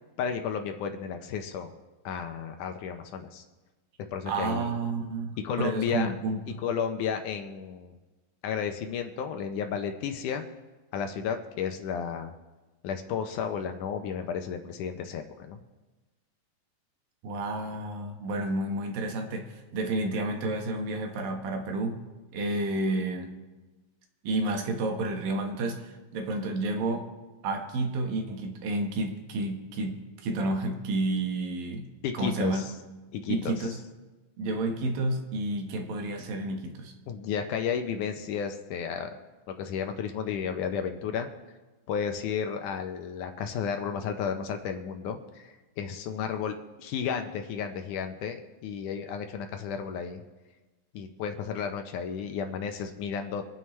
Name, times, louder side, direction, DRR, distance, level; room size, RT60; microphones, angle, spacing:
voice 1, 0.2-1.7 2.1-3.4 4.1-4.7 5.4-6.1 6.6-7.9 8.4-10.4 10.9-12.3 12.8-15.6 32.0-32.7 33.1-33.6 37.1-39.1 39.5-41.3 41.9-50.2 50.9-53.5, left 7 dB, 75° left, 6 dB, 2.0 m, -33 dB
voice 2, 4.3-6.4 17.2-19.5 19.7-22.0 22.3-23.4 24.2-27.1 27.4-31.9 32.1-32.6 33.3-33.8 34.4-36.9, right 2 dB, 80° right, 3 dB, 3.1 m, -30 dB
26.0 x 9.1 x 3.2 m, 1.2 s
omnidirectional pair, 4.0 m